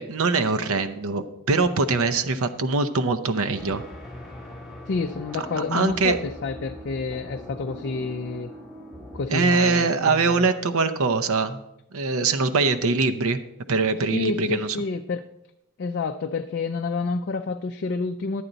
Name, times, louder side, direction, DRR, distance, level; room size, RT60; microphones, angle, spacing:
voice 1, 0.0-3.8 5.7-6.2 9.3-11.6 11.9-13.4 13.7-14.8, right 4 dB, 65° right, 9 dB, 0.6 m, -23 dB
sound 1, 3.5-9.3, equal, ahead, 2.9 m, -40 dB
voice 2, 4.9-8.5 9.1-10.5 14.1-15.2 15.8-18.4, left 4 dB, 50° left, 6 dB, 0.4 m, -29 dB
11.0 x 8.8 x 4.0 m, 0.85 s
head